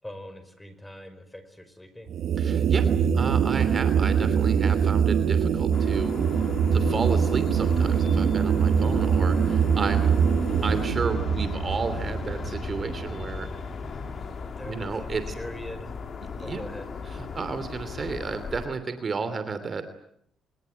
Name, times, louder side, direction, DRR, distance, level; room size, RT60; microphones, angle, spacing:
voice 1, 0.0-2.1 14.4-15.9 16.4-16.9, left 1 dB, 10° left, 11 dB, 5.3 m, -42 dB
sound 1, 2.1-13.4, right 7 dB, 70° right, 1.6 m, -23 dB
voice 2, 2.4-10.1 10.6-13.5 14.7-15.2 16.4-16.6 17.1-20.0, right 4 dB, 40° right, 11 dB, 2.9 m, -32 dB
sound 2, 5.7-18.7, left 5 dB, 50° left, 3.8 m, -36 dB
26.5 x 20.0 x 9.3 m, 0.69 s
cardioid pair, 90°, 0 cm